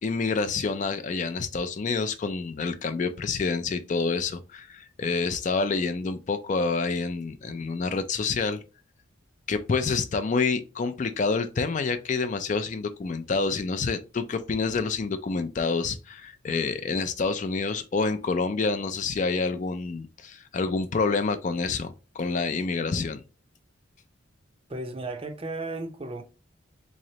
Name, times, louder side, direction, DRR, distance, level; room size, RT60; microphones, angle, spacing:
voice 1, 0.0-8.6 9.5-23.2, left 4 dB, 35° left, 0.3 m, -28 dB
voice 2, 24.7-26.2, right 2 dB, 25° right, 0.5 m, -34 dB
3.8 x 3.1 x 2.7 m
head